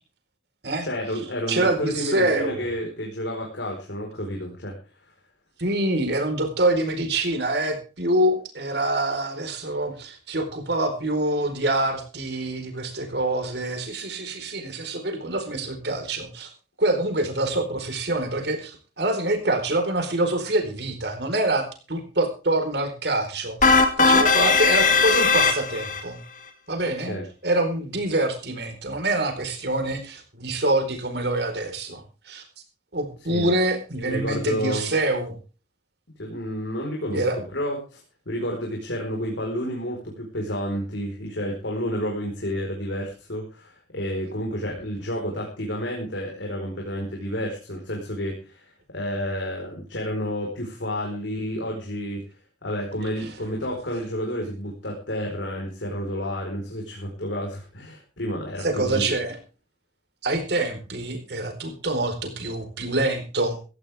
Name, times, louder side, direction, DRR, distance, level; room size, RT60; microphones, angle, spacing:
voice 1, 0.8-4.7 26.8-27.2 33.3-33.5 34.0-34.9 36.2-37.2 37.5-38.0 38.3-52.2 52.6-59.1, equal, 85° left, -1 dB, 4.7 m, -30 dB
voice 2, 1.5-2.6 5.6-16.5 16.8-26.2 26.7-27.2 27.4-32.4 32.9-35.3 37.1-37.4 53.2-53.3 58.6-59.4 60.2-63.6, right 2 dB, 65° right, 5 dB, 4.5 m, -25 dB
sound 1, 23.6-26.0, left 4 dB, 45° left, 2.6 m, -18 dB
16.5 x 15.5 x 3.6 m, 0.35 s
head